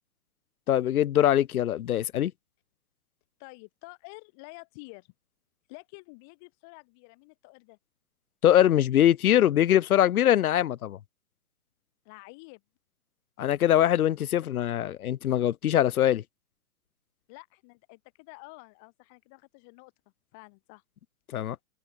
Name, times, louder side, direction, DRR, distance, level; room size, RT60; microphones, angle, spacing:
voice 1, 0.7-2.3 8.4-11.0 13.4-16.2 21.3-21.6, left 11 dB, 90° left, 0.6 m, -22 dB
voice 2, 3.4-5.1 5.7-7.8 12.1-12.6 17.3-19.9 20.3-20.8, left 32 dB, ahead, 0.3 m, -49 dB
hypercardioid pair, 145°, 43 cm